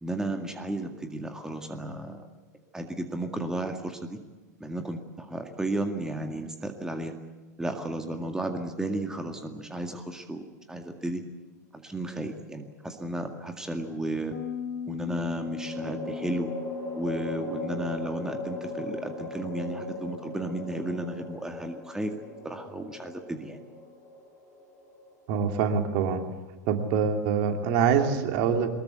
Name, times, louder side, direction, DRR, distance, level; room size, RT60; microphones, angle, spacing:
voice 1, 0.0-2.3 2.7-4.2 4.6-7.1 7.6-11.2 11.7-14.3 14.9-16.5 16.9-22.1 22.4-23.6, right 1 dB, 5° right, 5 dB, 2.0 m, -33 dB
sound 1, 12.0-12.8 15.1-26.4, left 2 dB, 30° left, 5.7 m, -40 dB
Bass guitar, 14.3-23.7, left 7 dB, 65° left, 3.2 m, -41 dB
voice 2, 25.3-26.2 26.7-28.7, right 6 dB, 45° right, 5 dB, 3.0 m, -25 dB
23.0 x 21.0 x 8.2 m, 1.2 s
figure-of-eight pair, 90°, 10 cm